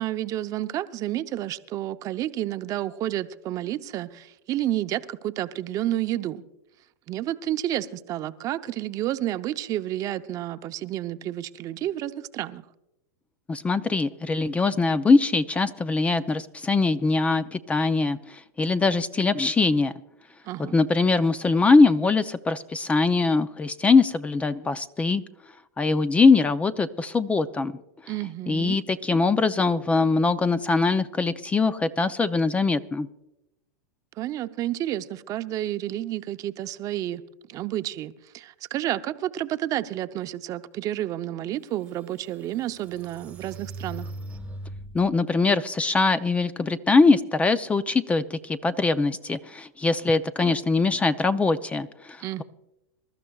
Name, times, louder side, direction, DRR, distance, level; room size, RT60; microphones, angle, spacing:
voice 1, 0.0-6.4 7.1-12.6 20.5-20.8 28.1-28.8 34.2-37.2 37.5-44.1 52.2-52.4, right 13 dB, 35° right, 0.7 m, -30 dB
voice 2, 13.5-19.9 20.6-25.2 25.8-27.7 28.5-33.1 44.9-52.4, left 3 dB, 15° left, 0.5 m, -22 dB
sound 1, 41.3-41.4 42.0-45.1, right 2 dB, 15° right, 1.3 m, -40 dB
26.5 x 13.0 x 2.3 m
hypercardioid pair, 125°, 10 cm